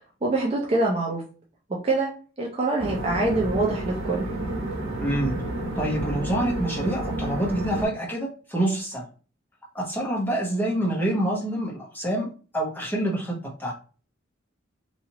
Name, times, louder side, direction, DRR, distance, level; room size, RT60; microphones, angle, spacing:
voice 1, 0.2-1.2 1.8-2.1 2.4-4.2, right 2 dB, 30° right, -2 dB, 0.5 m, -24 dB
sound 1, 2.8-7.9, right 1 dB, 85° right, 0.9 m, -30 dB
voice 2, 5.0-5.3 5.8-9.0 9.7-13.3 13.6-13.7, right 1 dB, 10° left, -4 dB, 0.9 m, -26 dB
3.0 x 2.4 x 2.8 m, 0.37 s
head